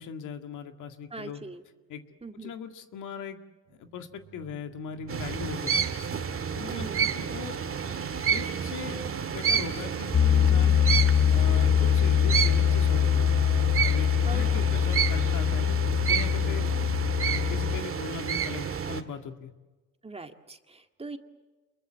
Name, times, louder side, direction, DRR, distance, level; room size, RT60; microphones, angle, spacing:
voice 1, 0.0-1.4 1.9-2.0 2.4-3.4 3.7-5.7 6.6-7.6 8.2-10.8 11.3-13.3 13.8-15.8 16.1-16.7 17.3-19.5, left 6 dB, 80° left, 7 dB, 2.0 m, -39 dB
voice 2, 1.1-1.6 2.2-2.5 6.7-7.0 14.2-14.4 14.7-14.8 20.0-21.2, right 3 dB, 20° right, 6 dB, 2.0 m, -41 dB
sound 1, 3.7-17.7, right 8 dB, 75° right, 3.3 m, -45 dB
sound 2, 5.1-19.0, right 7 dB, 45° right, 2.0 m, -30 dB
Piano, 10.1-17.8, left 9 dB, 25° left, 0.8 m, -23 dB
28.0 x 22.0 x 7.5 m, 1.2 s
cardioid pair, 90°, 30 cm